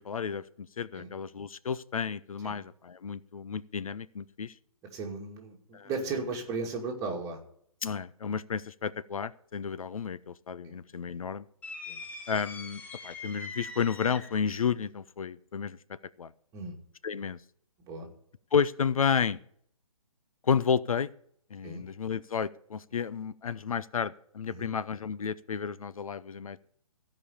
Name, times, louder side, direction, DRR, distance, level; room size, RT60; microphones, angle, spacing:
voice 1, 0.0-4.5 5.7-5.9 7.8-11.5 12.3-15.8 16.2-16.3 17.0-17.4 18.5-19.4 20.4-21.1 21.5-26.6, left 6 dB, 75° left, 17 dB, 0.6 m, -31 dB
voice 2, 4.9-7.4 10.6-10.8 11.9-12.0 16.5-16.7 17.9-18.1 21.6-21.9 24.5-24.7, right 4 dB, 20° right, 0 dB, 2.4 m, -36 dB
sound 1, 11.6-14.5, left 3 dB, 10° left, 0.8 m, -43 dB
15.5 x 5.3 x 8.6 m, 0.65 s
figure-of-eight pair, 140°, 18 cm